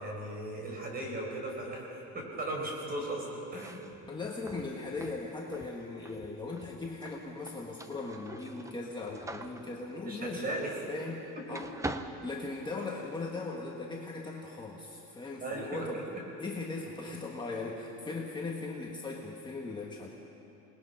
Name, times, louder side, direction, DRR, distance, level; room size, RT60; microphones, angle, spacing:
voice 1, 0.0-3.8 10.0-10.8 15.4-16.0, right 1 dB, 30° right, -1 dB, 4.9 m, -37 dB
sound 1, 3.4-11.2 11.5-13.1, right 2 dB, 10° right, 0.7 m, -45 dB
voice 2, 4.1-10.5 10.9-11.7 12.2-16.0 16.4-20.1, left 3 dB, 15° left, -3 dB, 1.5 m, -39 dB
27.5 x 20.0 x 5.7 m, 3.0 s
cardioid pair, 160°, 32 cm